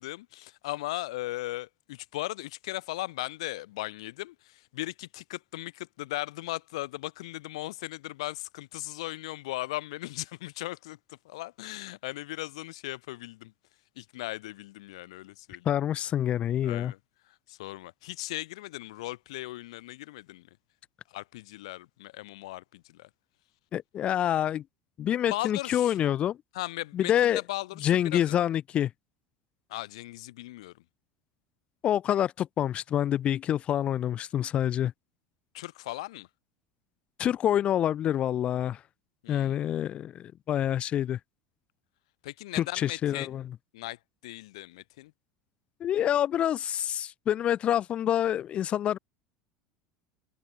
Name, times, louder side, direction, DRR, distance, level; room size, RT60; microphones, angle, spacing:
voice 1, 0.0-13.5 14.0-15.7 16.6-17.0 17.5-20.5 21.1-23.1 25.3-26.0 26.5-28.2 29.7-30.7 35.5-36.3 39.2-39.6 42.2-43.4 43.7-45.1, left 18 dB, 85° left, 2.9 m, -38 dB
voice 2, 15.6-16.9 23.7-24.6 25.0-26.4 26.9-27.4 27.8-28.9 31.8-34.9 37.2-38.8 39.3-41.2 42.5-43.4 45.8-49.0, left 11 dB, 40° left, 0.7 m, -27 dB
supercardioid pair, 120°, 3 cm